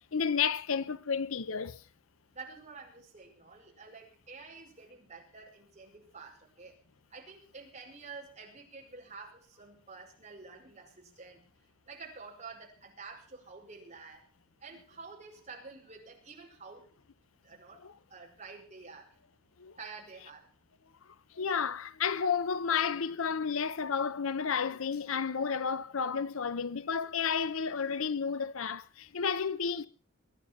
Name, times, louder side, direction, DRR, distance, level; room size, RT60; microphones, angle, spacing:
voice 1, 0.1-1.8 17.8-17.9 19.6-19.7 21.4-29.9, left 6 dB, 75° left, 0.7 m, -31 dB
voice 2, 2.3-6.8 7.1-11.4 11.9-14.3 14.6-16.9 17.4-17.8 18.1-19.1 19.8-20.5, right 4 dB, 35° right, 5.4 m, -49 dB
21.5 x 11.0 x 5.9 m
head